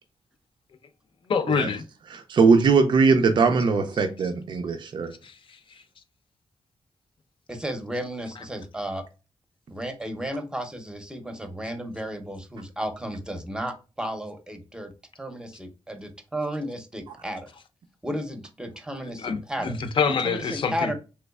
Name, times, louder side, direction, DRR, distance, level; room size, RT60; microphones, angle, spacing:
voice 1, 1.3-1.8 5.2-5.8 19.1-20.9, left 5 dB, 60° left, 0.5 m, -27 dB
voice 2, 2.1-5.1, right 4 dB, 55° right, 0.4 m, -20 dB
voice 3, 7.5-9.0 9.7-14.9 15.2-17.5 18.0-19.8 20.2-20.9, equal, 10° right, 0.6 m, -33 dB
3.4 x 3.1 x 2.2 m
wide cardioid pair, 105°, 10 cm